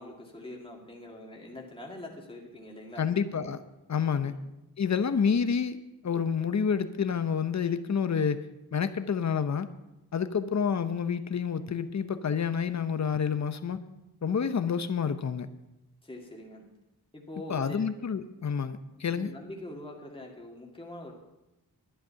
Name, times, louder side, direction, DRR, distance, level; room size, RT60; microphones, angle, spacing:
voice 1, 0.0-3.0 4.2-4.4 16.0-16.6 17.1-17.9 19.1-21.1, left 1 dB, 15° left, -1 dB, 2.1 m, -44 dB
voice 2, 3.0-3.6 3.9-4.3 4.8-5.8 6.0-8.5 8.7-9.7 10.1-13.8 14.2-15.5 17.5-19.3, left 6 dB, 45° left, 11 dB, 0.8 m, -28 dB
11.0 x 10.5 x 5.7 m, 0.96 s
wide cardioid pair, 110°, 40 cm